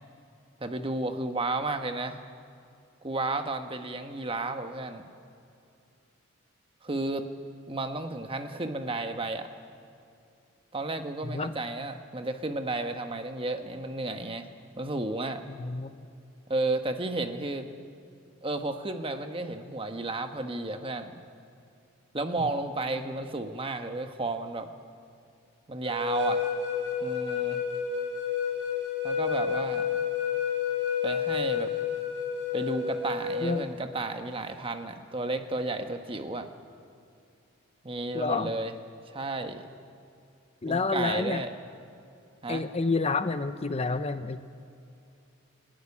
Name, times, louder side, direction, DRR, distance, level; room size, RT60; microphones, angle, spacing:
voice 1, 0.6-2.2 3.0-5.0 6.8-7.3 7.7-9.5 10.7-14.5 14.8-15.4 16.5-17.7 18.4-21.2 22.1-24.7 25.7-26.4 27.0-27.6 29.0-30.0 31.0-31.7 32.5-36.5 37.8-38.7 39.1-39.6 40.7-41.5 42.4-42.7, right 2 dB, 25° right, 7 dB, 1.1 m, -32 dB
voice 2, 15.5-15.9 33.4-33.7 38.1-38.5 40.6-41.4 42.5-44.6, left 3 dB, 30° left, 11 dB, 0.6 m, -29 dB
sound 1, 25.8-33.6, left 7 dB, 65° right, 5.9 m, -30 dB
26.0 x 11.5 x 9.7 m, 2.6 s
head